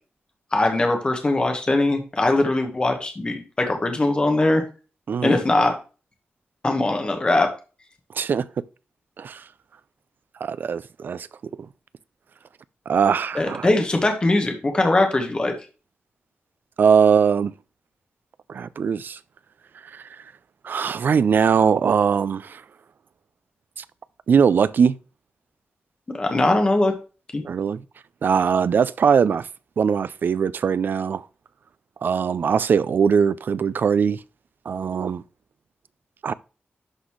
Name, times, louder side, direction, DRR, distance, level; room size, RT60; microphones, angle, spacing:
voice 1, 0.5-4.6 5.2-5.7 6.6-7.5 13.3-15.5 26.1-26.9 27.3-27.4, left 2 dB, 25° left, 1.2 m, -21 dB
voice 2, 8.1-8.5 9.2-9.4 10.4-11.3 11.6-11.7 12.9-13.7 16.8-17.5 18.5-19.2 19.9-20.0 20.6-22.6 23.8-23.9 24.3-25.0 27.4-27.8 28.2-29.5 29.8-31.2 32.0-34.2 34.7-35.2 36.2-36.3, right 6 dB, 55° right, 0.3 m, -21 dB
11.0 x 4.1 x 3.1 m
wide cardioid pair, 170°, 4 cm